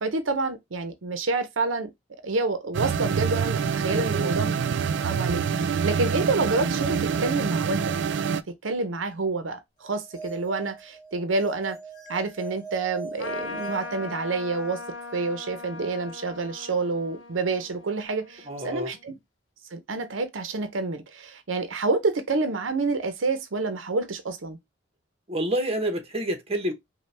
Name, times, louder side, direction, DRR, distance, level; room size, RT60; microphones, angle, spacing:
voice 1, 0.0-1.9 2.2-4.5 5.0-7.9 8.5-11.8 12.1-14.8 15.1-19.1 19.7-24.6, right 3 dB, 90° right, 0.7 m, -28 dB
sound 1, 2.7-8.4, right 6 dB, 65° right, 0.3 m, -26 dB
voice 2, 3.8-4.3 18.5-18.9 25.3-26.7, right 1 dB, 30° right, 0.9 m, -28 dB
sound 2, 9.9-14.7, right 4 dB, 20° left, 2.2 m, -41 dB
Trumpet, 13.2-19.0, left 3 dB, 70° left, 0.7 m, -40 dB
5.2 x 2.3 x 3.3 m
head